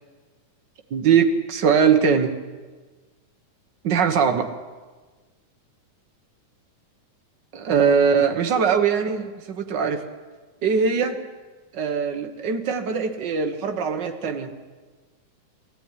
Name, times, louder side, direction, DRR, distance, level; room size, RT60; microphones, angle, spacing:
voice 1, 0.9-2.4 3.8-4.5 7.5-10.0 10.6-11.2 11.7-14.5, right 6 dB, 60° right, 6 dB, 1.2 m, -21 dB
19.5 x 13.5 x 9.8 m, 1.3 s
omnidirectional pair, 3.6 m